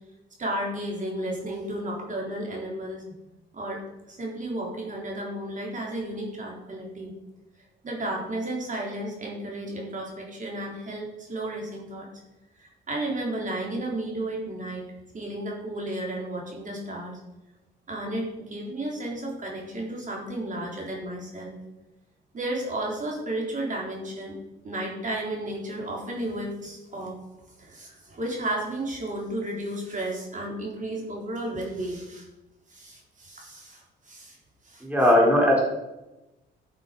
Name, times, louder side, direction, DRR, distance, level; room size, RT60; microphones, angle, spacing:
voice 1, 0.4-3.1 3.5-3.8 4.1-7.1 7.8-12.1 12.6-14.8 15.1-17.2 17.9-21.5 22.3-24.4 24.6-27.2 27.6-32.3 32.7-34.4 34.6-34.8, right 1 dB, 40° right, -2 dB, 3.7 m, -33 dB
voice 2, 34.8-35.6, left 1 dB, 5° right, -3 dB, 3.5 m, -18 dB
12.5 x 6.6 x 5.2 m, 0.98 s
cardioid pair, 90°, 20 cm